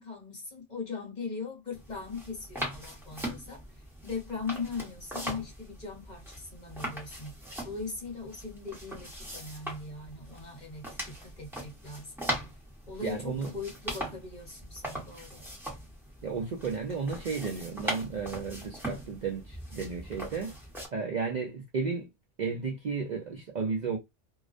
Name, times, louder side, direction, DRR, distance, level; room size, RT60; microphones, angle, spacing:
voice 1, 0.0-7.3 7.6-12.1 12.9-15.4, left 4 dB, 40° left, 1.0 m, -40 dB
sound 1, 1.7-20.9, equal, ahead, 0.8 m, -40 dB
voice 2, 13.0-13.5 16.2-20.5 20.9-22.1 22.4-24.0, right 5 dB, 55° right, 0.5 m, -33 dB
2.3 x 2.1 x 2.4 m
omnidirectional pair, 1.2 m